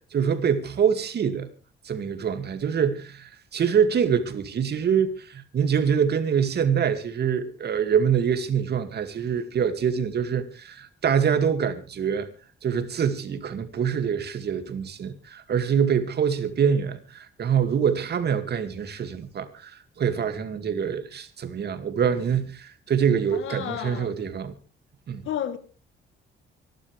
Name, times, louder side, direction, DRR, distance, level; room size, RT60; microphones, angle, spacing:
voice 1, 0.1-1.5 1.8-12.3 12.6-24.5 25.1-25.2, right 7 dB, 55° right, 2.4 m, -25 dB
voice 2, 23.4-24.1 25.3-25.6, left 10 dB, 75° left, 1.4 m, -31 dB
25.5 x 12.0 x 3.4 m
cardioid pair, 90°, 20 cm